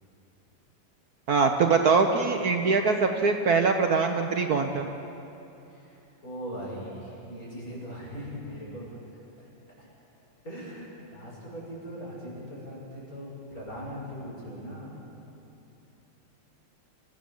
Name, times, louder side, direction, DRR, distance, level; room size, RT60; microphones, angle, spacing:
voice 1, 1.3-4.9, right 4 dB, 55° right, 5 dB, 1.3 m, -23 dB
voice 2, 6.2-9.0 9.4-9.5 10.4-14.9, equal, 45° left, -6 dB, 7.5 m, -40 dB
27.5 x 14.5 x 7.2 m, 2.9 s
omnidirectional pair, 2.1 m